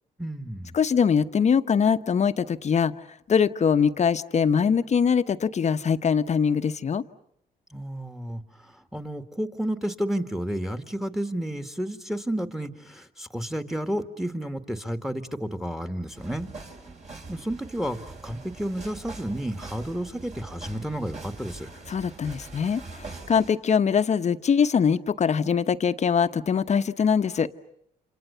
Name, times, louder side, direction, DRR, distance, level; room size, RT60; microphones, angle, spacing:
voice 1, 0.2-0.8 7.7-16.5 17.3-21.7, right 1 dB, ahead, 8 dB, 1.9 m, -31 dB
voice 2, 0.7-2.9 3.3-7.0 21.9-27.5, left 6 dB, 45° left, 10 dB, 1.1 m, -22 dB
sound 1, 16.1-23.5, right 3 dB, 45° right, 5.3 m, -43 dB
29.5 x 27.0 x 6.9 m, 0.73 s
cardioid pair, 85°, 17 cm